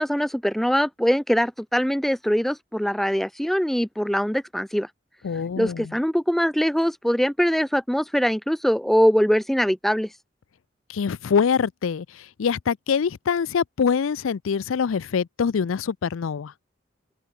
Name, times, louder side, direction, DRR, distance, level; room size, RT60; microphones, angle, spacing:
voice 1, 0.0-4.9 5.6-10.1, equal, ahead, 0.5 m, -22 dB
voice 2, 5.2-6.0 10.9-16.5, left 6 dB, 80° left, 0.4 m, -24 dB
open air
head